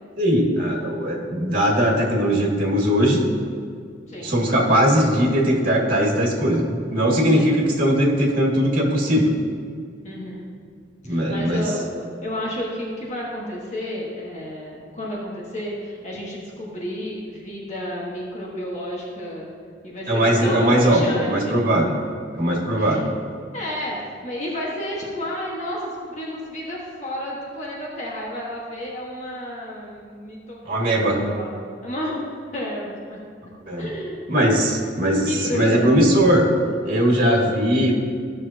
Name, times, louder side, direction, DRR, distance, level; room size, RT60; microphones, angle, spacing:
voice 1, 0.2-3.2 4.2-9.3 11.1-11.6 20.1-21.0 21.3-22.0 22.3-23.1 30.7-31.2 33.7-33.9 34.3-36.4 36.8-37.9, equal, 50° right, -2 dB, 2.1 m, -19 dB
voice 2, 10.0-10.4 11.0-19.5 19.8-21.6 22.8-23.0 23.5-24.0 24.2-31.5 31.8-33.2 33.8-34.2 35.2-36.1, left 1 dB, 40° left, -4 dB, 1.6 m, -31 dB
15.0 x 6.4 x 2.9 m, 2.2 s
head